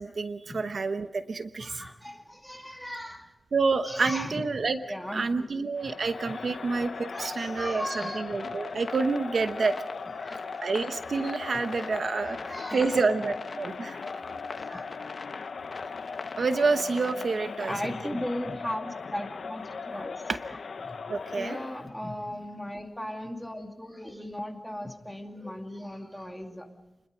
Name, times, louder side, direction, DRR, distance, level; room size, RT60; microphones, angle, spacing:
voice 1, 0.0-1.8 3.5-4.8 5.1-9.8 10.6-14.0 16.4-17.7 20.3-20.4 21.1-21.6, right 4 dB, 65° right, 9 dB, 1.0 m, -28 dB
voice 2, 1.6-3.3 3.8-4.4 4.8-5.5 5.8-5.9 6.9-8.4 10.1-10.6 11.8-11.9 12.2-13.3 14.5-15.0 17.4-20.2 20.5-21.0 21.3-26.7, left 1 dB, ahead, 3 dB, 2.5 m, -37 dB
Crowd, 5.8-22.0, left 5 dB, 85° left, 0.9 m, -39 dB
sound 1, 7.9-17.7, left 4 dB, 55° left, 1.2 m, -44 dB
29.0 x 21.5 x 5.2 m, 0.97 s
wide cardioid pair, 120°, 0 cm